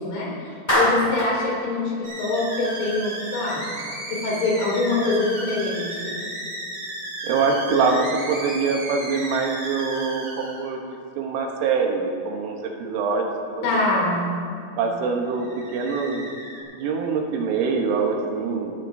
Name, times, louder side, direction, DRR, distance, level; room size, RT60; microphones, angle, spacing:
voice 1, 0.0-3.6 4.1-6.1 13.6-14.2, left 2 dB, 75° left, -5 dB, 5.3 m, -24 dB
Clapping, 0.7-1.4, equal, 10° left, 1.2 m, -21 dB
sound 1, 2.0-10.6 15.3-16.6, right 1 dB, 45° right, 1.9 m, -34 dB
voice 2, 7.2-13.6 14.8-16.3 16.7-18.7, right 4 dB, 80° right, 1 dB, 3.3 m, -24 dB
20.5 x 11.5 x 2.7 m, 2.3 s
omnidirectional pair, 5.6 m